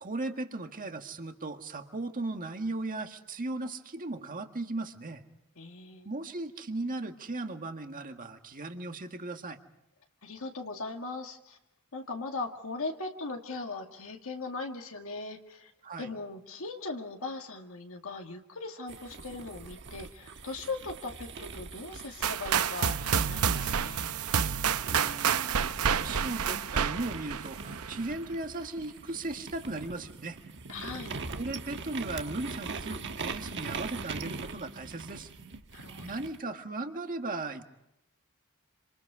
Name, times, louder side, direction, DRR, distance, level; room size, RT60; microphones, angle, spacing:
voice 1, 0.0-5.2 6.1-9.6 15.8-16.1 24.9-30.4 31.3-35.3 36.0-37.7, right 2 dB, 40° right, 5 dB, 1.8 m, -37 dB
voice 2, 5.6-6.1 10.2-11.6 11.9-15.7 16.0-24.1 30.7-31.2 35.7-36.2, left 3 dB, 70° left, 2 dB, 2.1 m, -39 dB
sound 1, 18.9-24.3 24.8-36.4, right 4 dB, 55° right, 1.3 m, -42 dB
sound 2, 22.2-28.1, right 7 dB, 90° right, 0.7 m, -29 dB
27.0 x 26.5 x 4.9 m, 0.83 s
head